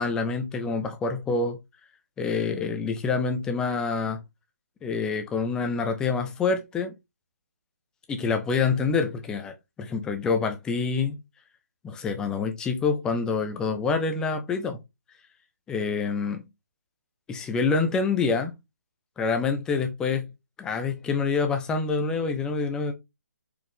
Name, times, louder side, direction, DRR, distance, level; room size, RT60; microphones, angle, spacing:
voice 1, 0.0-1.6 2.2-4.2 4.8-6.9 8.1-11.2 11.8-14.8 15.7-16.4 17.3-18.5 19.2-20.3 20.6-22.9, left 4 dB, 10° left, 0.4 m, -26 dB
4.5 x 2.4 x 3.5 m
figure-of-eight pair, 145°, 9 cm